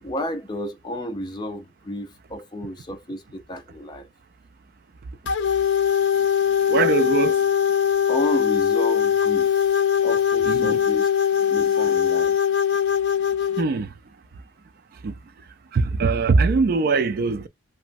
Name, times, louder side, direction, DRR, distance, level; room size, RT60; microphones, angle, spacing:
voice 1, 0.0-4.1 8.1-9.7 10.0-11.1 11.3-12.4, left 1 dB, 20° left, 0.4 m, -32 dB
sound 1, 5.3-13.6, left 8 dB, 65° left, 0.6 m, -21 dB
voice 2, 6.7-7.4 10.5-10.8 11.8-11.9 13.6-13.9 15.0-15.1 15.7-17.5, right 4 dB, 50° right, 0.3 m, -21 dB
3.0 x 2.1 x 2.6 m
head